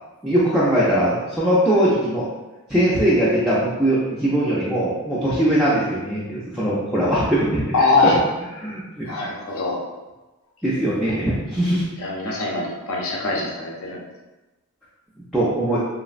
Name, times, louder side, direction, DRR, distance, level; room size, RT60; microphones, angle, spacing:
voice 1, 0.2-2.3 2.7-7.6 8.0-8.1 8.6-9.1 10.6-11.8 15.3-15.8, right 1 dB, ahead, -10 dB, 0.3 m, -20 dB
voice 2, 7.7-8.1 9.0-9.8 12.0-14.0, left 3 dB, 70° left, -3 dB, 0.5 m, -22 dB
3.1 x 2.0 x 2.4 m, 1.1 s
head